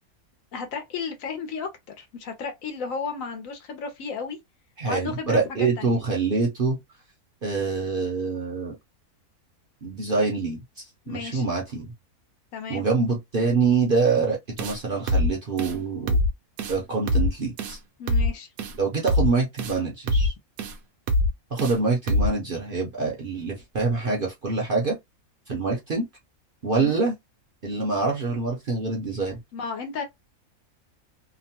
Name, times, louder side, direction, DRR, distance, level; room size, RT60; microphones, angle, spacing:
voice 1, 0.5-4.4 4.9-6.0 11.0-11.4 12.5-12.8 18.0-18.5 26.8-27.0 29.5-30.0, left 5 dB, 65° left, 1.1 m, -33 dB
voice 2, 4.8-6.8 7.4-8.7 9.8-11.9 12.7-16.2 16.7-17.8 18.7-20.3 21.5-25.0 25.5-26.1 26.6-27.1 27.6-29.4, right 4 dB, 50° right, 0.7 m, -25 dB
sound 1, 14.6-14.8 15.1-15.3 15.6-15.7 16.1-16.3 16.6-16.8 17.1-17.3 17.6-17.8 18.1-18.3 18.6-18.7 19.1-19.3 19.6-19.8 20.1-20.3 20.6-20.7 21.1-21.3 21.6-21.8 22.1-22.3, left 1 dB, 75° right, 1.0 m, -23 dB
2.9 x 2.1 x 2.7 m
omnidirectional pair, 1.6 m